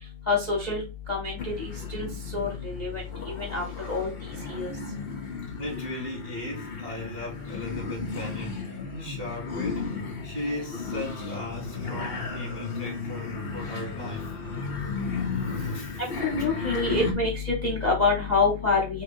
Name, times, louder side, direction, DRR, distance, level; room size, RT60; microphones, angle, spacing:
voice 1, 0.3-0.8 1.1-4.1 4.5-4.7 16.2-19.0, left 3 dB, 40° left, 0.6 m, -27 dB
sound 1, 1.4-17.1, left 4 dB, 85° left, 0.5 m, -34 dB
voice 2, 5.6-9.9 10.2-14.3 15.2-16.1 16.7-16.9, left 1 dB, 30° right, 0.5 m, -37 dB
3.1 x 3.1 x 3.6 m
omnidirectional pair, 2.2 m